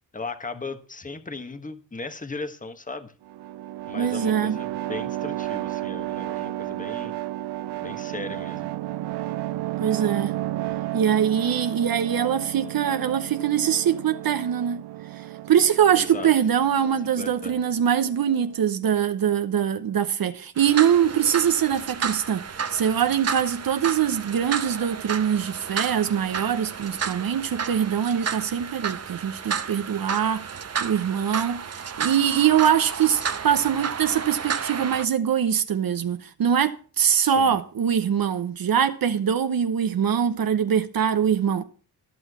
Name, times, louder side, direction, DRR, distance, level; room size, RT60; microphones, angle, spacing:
voice 1, 0.1-3.1 3.9-7.1 7.8-8.7 15.9-16.3 17.2-17.6 37.2-37.6, left 3 dB, 20° left, 1.4 m, -37 dB
sound 1, 3.2-18.7, right 15 dB, 75° right, 0.6 m, -33 dB
voice 2, 4.0-4.6 9.8-10.3 10.9-14.8 15.5-41.6, right 8 dB, 60° right, 1.0 m, -23 dB
sound 2, 20.6-35.1, right 6 dB, 40° right, 0.9 m, -32 dB
14.0 x 6.3 x 6.1 m
supercardioid pair, 55°, 40 cm